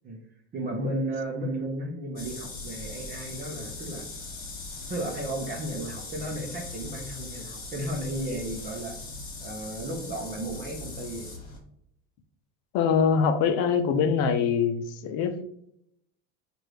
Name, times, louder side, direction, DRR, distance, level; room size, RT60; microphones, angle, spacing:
voice 1, 0.5-4.1 4.9-9.0 9.4-11.3, right 1 dB, 25° right, 0.7 m, -34 dB
sound 1, 2.2-11.6, left 3 dB, 35° left, 1.6 m, -40 dB
voice 2, 12.7-15.4, left 6 dB, 60° left, 0.6 m, -23 dB
6.4 x 2.6 x 3.1 m
cardioid pair, 155°, 36 cm